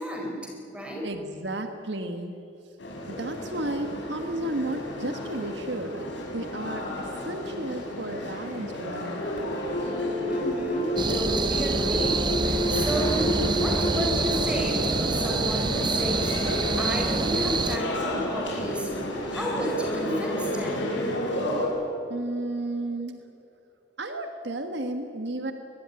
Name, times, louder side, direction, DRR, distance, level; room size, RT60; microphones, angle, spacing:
voice 1, 0.0-1.1 10.3-16.4 16.8-18.9 19.3-20.9, right 1 dB, 5° right, 0 dB, 4.6 m, -32 dB
voice 2, 1.0-2.4 3.0-9.2 22.1-23.3 24.0-25.5, right 1 dB, 65° right, 6 dB, 1.6 m, -33 dB
sound 1, 2.8-21.7, left 1 dB, 75° left, 6.5 m, -33 dB
sound 2, 9.2-19.0, left 1 dB, 45° left, 7.0 m, -32 dB
sound 3, 11.0-17.8, right 3 dB, 25° right, 0.7 m, -27 dB
24.0 x 20.5 x 9.8 m, 2.7 s
head